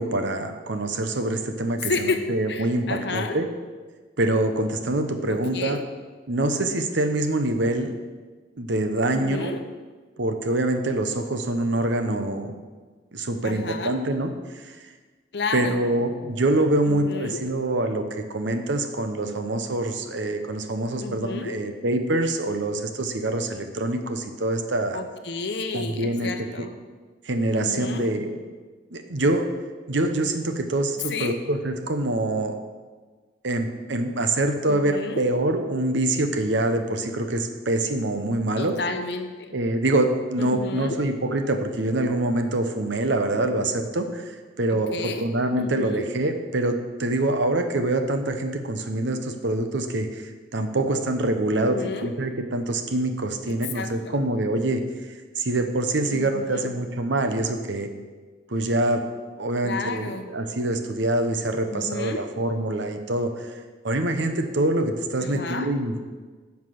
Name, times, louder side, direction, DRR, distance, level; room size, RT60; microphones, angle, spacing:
voice 1, 0.0-3.5 4.2-5.8 6.3-8.0 8.6-9.6 10.2-12.5 13.1-14.9 15.5-25.0 25.7-26.7 27.2-28.4 28.9-29.5 29.9-32.6 33.4-38.7 39.5-54.8 55.1-57.9 58.5-59.0 59.4-66.0, right 1 dB, 70° right, 7 dB, 0.9 m, -25 dB
voice 2, 1.8-2.2 2.5-3.4 5.3-5.8 9.1-9.6 13.4-14.0 15.3-15.8 16.9-17.4 21.0-21.5 24.9-26.7 27.5-28.1 31.1-31.4 34.7-35.2 38.6-39.5 40.4-41.0 44.7-45.2 45.6-46.1 51.5-52.1 53.7-54.2 56.1-56.7 59.6-60.3 61.7-62.2 65.2-65.7, left 3 dB, 60° left, 7 dB, 0.8 m, -31 dB
9.9 x 5.9 x 5.9 m, 1.4 s
head